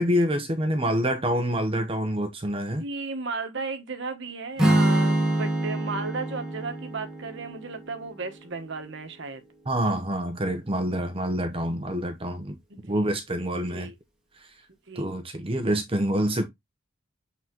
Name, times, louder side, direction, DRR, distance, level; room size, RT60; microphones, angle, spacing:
voice 1, 0.0-2.8 9.7-12.5 12.9-13.9 14.9-16.5, equal, 25° right, 0.9 m, -26 dB
voice 2, 2.8-9.4 12.7-13.1 13.7-13.9 14.9-15.1, right 3 dB, 60° right, 1.3 m, -34 dB
Strum, 4.6-8.7, right 1 dB, 5° right, 1.8 m, -26 dB
7.8 x 4.1 x 2.9 m
head